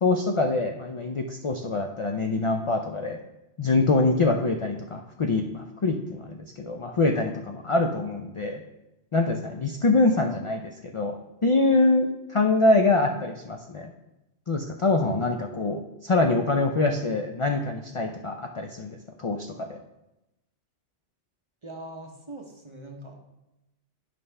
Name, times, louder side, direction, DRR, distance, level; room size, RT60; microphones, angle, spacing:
voice 1, 0.0-3.2 3.6-8.6 9.1-11.1 11.4-13.9 14.5-19.8, left 2 dB, 60° left, 3 dB, 0.3 m, -24 dB
voice 2, 15.5-15.8 21.6-23.2, right 1 dB, 30° right, 2 dB, 0.7 m, -42 dB
9.1 x 5.4 x 3.3 m, 0.94 s
omnidirectional pair, 1.2 m